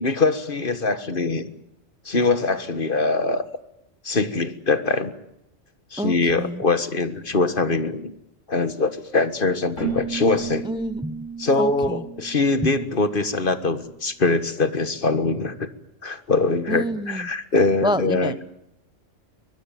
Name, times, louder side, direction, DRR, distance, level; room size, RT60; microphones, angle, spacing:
voice 1, 0.0-1.5 2.0-3.4 4.0-5.1 5.9-8.1 8.5-10.7 11.4-15.7 16.0-18.3, left 3 dB, 45° left, 12 dB, 1.8 m, -23 dB
voice 2, 6.0-6.6 10.6-11.3 11.6-12.0 12.6-12.7 16.7-17.3 17.8-18.4, equal, 5° right, 14 dB, 0.7 m, -27 dB
Keyboard (musical), 9.8-13.4, right 6 dB, 85° left, 7.8 m, -34 dB
24.0 x 20.5 x 9.2 m, 0.81 s
omnidirectional pair, 1.3 m